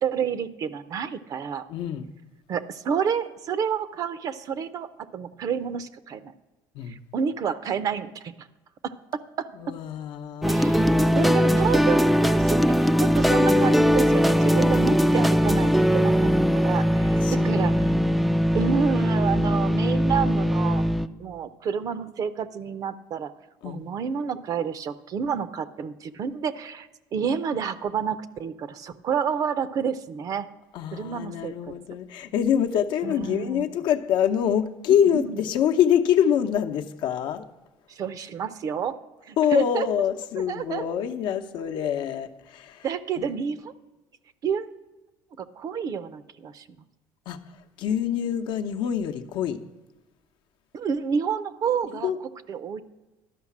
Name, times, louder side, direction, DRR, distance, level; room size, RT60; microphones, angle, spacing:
voice 1, 0.0-1.6 2.5-6.3 6.9-8.5 8.8-9.5 10.5-18.0 18.5-20.9 21.2-23.3 23.6-30.5 30.9-31.5 33.0-33.7 35.1-35.4 37.9-39.0 39.3-40.1 40.4-40.8 42.8-43.7 44.4-44.7 45.4-46.6 50.7-52.1 52.5-52.8, right 7 dB, 45° right, 15 dB, 0.6 m, -29 dB
voice 2, 1.7-2.1 6.7-7.0 9.6-11.2 17.2-17.6 23.6-23.8 30.7-37.4 39.4-42.8 43.2-43.3 47.3-47.4 47.8-49.6 52.0-52.2, left 9 dB, 70° left, 6 dB, 0.8 m, -25 dB
sound 1, 10.4-21.1, equal, ahead, 0.3 m, -20 dB
12.0 x 5.7 x 7.2 m, 1.1 s
cardioid pair, 130°, 8 cm